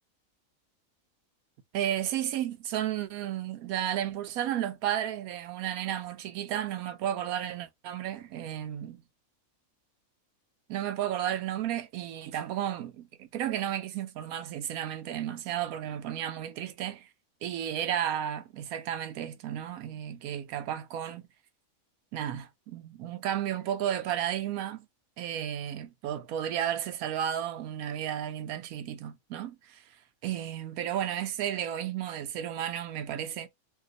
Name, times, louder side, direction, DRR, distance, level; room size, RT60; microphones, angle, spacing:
voice 1, 1.7-9.0 10.7-17.1 17.4-21.3 22.1-24.9 25.2-29.8 30.2-33.5, right 10 dB, 85° right, 1.0 m, -33 dB
2.7 x 2.3 x 3.8 m
omnidirectional pair, 1.5 m